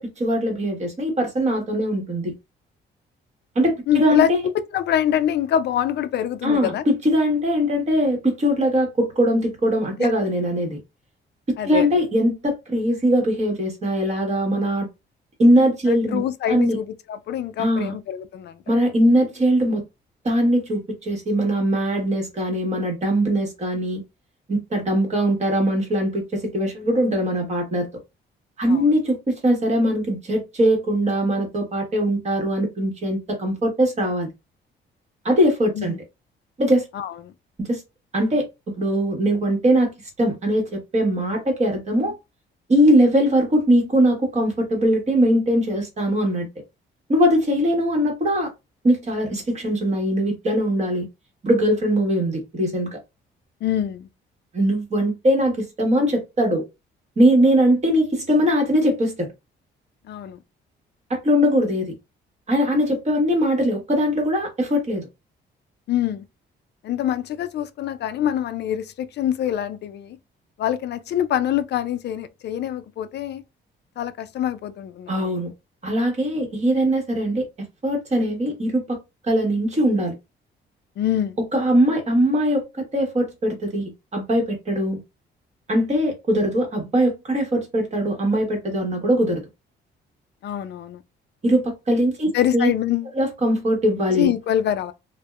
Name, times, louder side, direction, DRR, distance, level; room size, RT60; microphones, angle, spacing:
voice 1, 0.2-2.3 3.5-4.4 6.4-10.8 11.6-14.9 15.4-16.2 16.5-16.8 17.6-17.9 18.7-19.8 20.2-24.0 24.5-27.9 28.6-34.3 35.2-35.9 36.6-36.9 37.6-37.8 38.1-38.4 38.8-39.9 40.2-42.1 42.7-46.5 47.1-48.5 48.8-51.1 51.4-53.0 54.5-56.6 57.2-59.3 61.1-61.9 62.5-65.1 75.1-75.5 75.8-77.5 77.8-79.0 79.2-80.2 81.5-85.0 85.7-89.4 91.4-92.7 93.1-94.3, equal, 35° right, 1.2 m, -21 dB
voice 2, 3.9-4.3 4.7-6.8 10.0-10.1 11.6-11.9 16.1-18.7 28.7-28.9 35.8-36.0 36.9-37.3 53.6-54.1 60.0-60.4 65.9-66.2 66.8-70.2 70.6-73.4 74.0-75.3 81.0-81.4 90.4-91.0 92.3-93.1 94.2-94.9, left 10 dB, 60° left, 0.4 m, -25 dB
2.6 x 2.1 x 2.3 m
cardioid pair, 90°, 20 cm